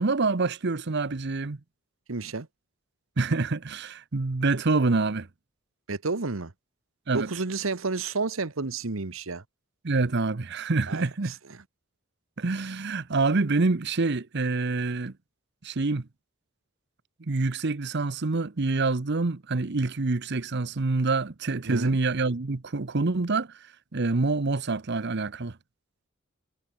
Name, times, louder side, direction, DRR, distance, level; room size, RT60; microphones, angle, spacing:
voice 1, 0.0-1.6 3.2-5.3 7.1-7.3 9.8-11.3 12.4-15.1 15.6-16.0 17.3-23.5 23.9-25.5, right 3 dB, 55° right, 0.9 m, -26 dB
voice 2, 2.1-2.5 5.9-6.5 7.1-9.4 10.9-11.6 21.7-22.0, right 3 dB, 75° right, 1.2 m, -31 dB
head